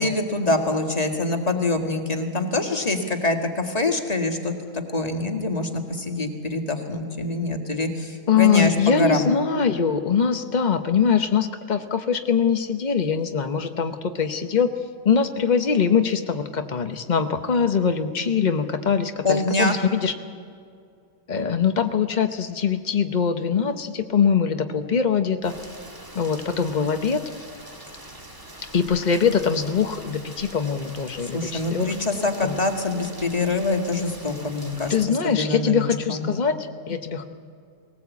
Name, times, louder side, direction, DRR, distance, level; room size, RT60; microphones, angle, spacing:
voice 1, 0.0-9.3 19.2-19.8 31.3-34.9 35.2-36.3, left 2 dB, 20° left, 4 dB, 1.8 m, -25 dB
voice 2, 8.3-14.7 15.0-20.1 21.3-25.5 26.1-27.2 28.7-31.9 32.4-32.6 34.9-37.2, left 6 dB, 70° left, 7 dB, 0.4 m, -22 dB
Rain, 25.4-35.1, right 1 dB, 10° right, 1.4 m, -43 dB
21.0 x 18.5 x 8.3 m, 2.2 s
omnidirectional pair, 2.1 m